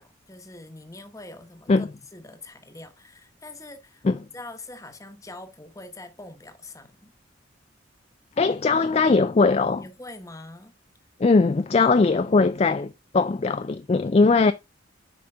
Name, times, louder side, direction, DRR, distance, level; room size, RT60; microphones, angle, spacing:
voice 1, 0.0-1.9 2.1-4.0 4.3-7.1 9.8-10.7, left 2 dB, 15° left, 1.0 m, -43 dB
voice 2, 8.4-9.8 11.2-14.5, left 3 dB, 30° left, 0.3 m, -20 dB
7.8 x 5.3 x 3.5 m
head